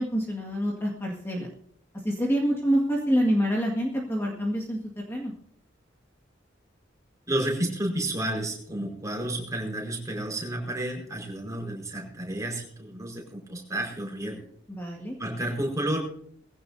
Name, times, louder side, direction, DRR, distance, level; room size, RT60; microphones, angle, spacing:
voice 1, 0.0-1.5 2.0-5.3 14.7-15.2, equal, 15° left, -2 dB, 2.0 m, -27 dB
voice 2, 7.3-14.4 15.2-16.0, right 1 dB, 20° right, 0 dB, 5.0 m, -31 dB
20.5 x 16.0 x 2.8 m, 0.68 s
head